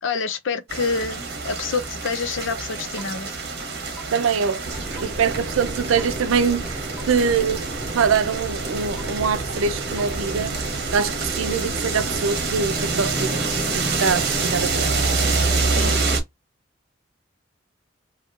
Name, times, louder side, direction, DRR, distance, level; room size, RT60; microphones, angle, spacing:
voice 1, 0.0-3.3 15.8-15.9, left 4 dB, 70° left, 0.6 m, -27 dB
sound 1, 0.7-16.2, right 4 dB, 50° right, 1.0 m, -27 dB
sound 2, 3.0-3.1 4.0-4.1 5.0-5.1 6.0-6.1 7.0-7.1 8.0-8.1 9.0-9.1 10.0-10.1 11.0-11.1 12.0-12.1, equal, ahead, 0.4 m, -39 dB
voice 2, 4.1-4.6 5.0-6.8 7.1-7.7 7.9-10.7 10.9-14.9, right 6 dB, 85° right, 0.5 m, -24 dB
sound 3, 4.6-16.0, right 2 dB, 25° right, 1.1 m, -34 dB
2.9 x 2.8 x 2.4 m
head